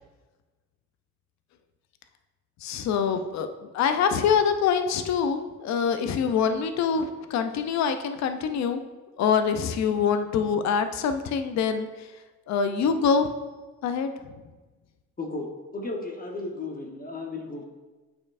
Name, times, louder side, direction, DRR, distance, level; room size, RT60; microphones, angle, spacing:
voice 1, 2.6-3.5 3.7-8.8 9.2-11.9 12.5-13.3 13.8-14.1, left 6 dB, 65° left, 8 dB, 0.5 m, -25 dB
voice 2, 15.7-17.6, left 2 dB, 30° left, 1 dB, 0.9 m, -34 dB
8.8 x 4.3 x 2.5 m, 1.2 s
cardioid pair, 90°, 30 cm